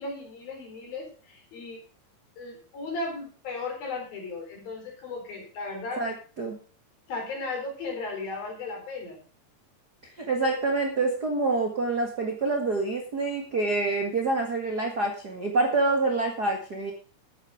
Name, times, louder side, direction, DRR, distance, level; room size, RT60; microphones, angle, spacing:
voice 1, 0.0-1.8 2.4-6.0 7.1-9.2, left 3 dB, 55° left, 2 dB, 5.6 m, -36 dB
voice 2, 6.0-6.6 10.2-16.9, right 3 dB, 55° right, 2 dB, 1.1 m, -27 dB
13.0 x 9.3 x 5.0 m, 0.38 s
omnidirectional pair, 5.1 m